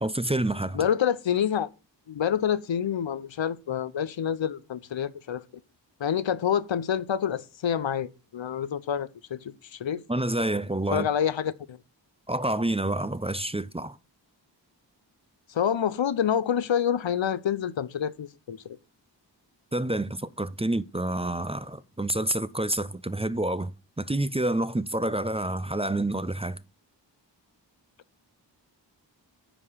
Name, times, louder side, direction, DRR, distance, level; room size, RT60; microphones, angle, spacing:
voice 1, 0.0-0.8 10.1-11.1 12.3-14.0 19.7-23.7 24.0-26.6, right 1 dB, 15° right, 0.5 m, -28 dB
voice 2, 0.7-1.7 2.1-5.4 6.0-10.0 10.9-11.8 15.5-18.6, left 8 dB, 85° left, 0.7 m, -27 dB
10.0 x 4.9 x 5.5 m
wide cardioid pair, 45°, 44 cm